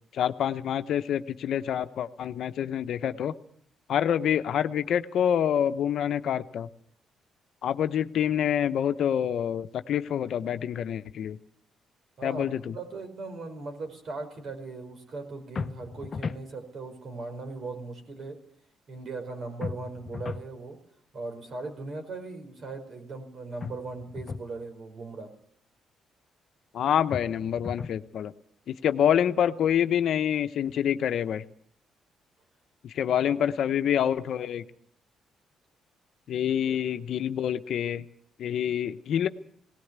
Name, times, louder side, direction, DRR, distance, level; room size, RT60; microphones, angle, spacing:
voice 1, 0.1-3.3 3.9-6.7 7.6-11.4 12.2-12.7 26.7-28.3 28.7-31.4 32.8-34.6 36.3-38.0 38.4-39.3, left 9 dB, 70° left, 10 dB, 0.9 m, -27 dB
voice 2, 12.2-18.4 18.9-20.8 21.1-25.3 33.1-33.3 36.6-36.8, right 3 dB, 55° right, 5 dB, 5.0 m, -39 dB
sound 1, 15.6-16.5 19.6-20.5 23.6-24.5 27.1-28.0, left 5 dB, 40° left, 0.8 m, -36 dB
18.5 x 17.0 x 8.2 m, 0.66 s
cardioid pair, 90°, 0 cm